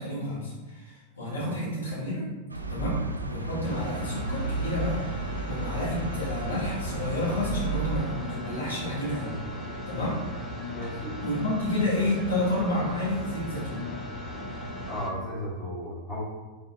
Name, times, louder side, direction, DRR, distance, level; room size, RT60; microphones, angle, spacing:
voice 1, 0.0-2.3 2.7-3.0 3.3-9.4 9.8-10.2 11.2-13.9, left 1 dB, 70° left, -6 dB, 1.3 m, -30 dB
sound 1, 2.5-8.0, right 3 dB, 80° right, 0.3 m, -33 dB
sound 2, 3.6-15.1, left 1 dB, 15° left, 0.7 m, -37 dB
voice 2, 10.7-11.1 14.9-16.2, equal, ahead, -9 dB, 1.5 m, -34 dB
3.9 x 3.7 x 2.5 m, 1.3 s
figure-of-eight pair, 90°, 0 cm